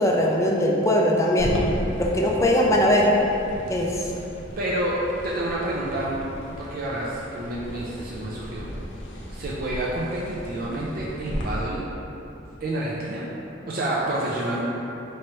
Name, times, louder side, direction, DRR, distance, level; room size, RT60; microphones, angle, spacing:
voice 1, 0.0-1.5 2.0-3.1 3.7-4.1, equal, 15° left, -2 dB, 0.4 m, -20 dB
sound 1, 1.4-11.4, equal, 70° left, 0.7 m, -35 dB
voice 2, 4.6-5.0 5.2-6.2 6.6-8.7 9.3-11.8 12.6-13.2 13.7-14.6, right 1 dB, 50° right, -5 dB, 0.4 m, -28 dB
4.6 x 3.0 x 3.0 m, 3.0 s
head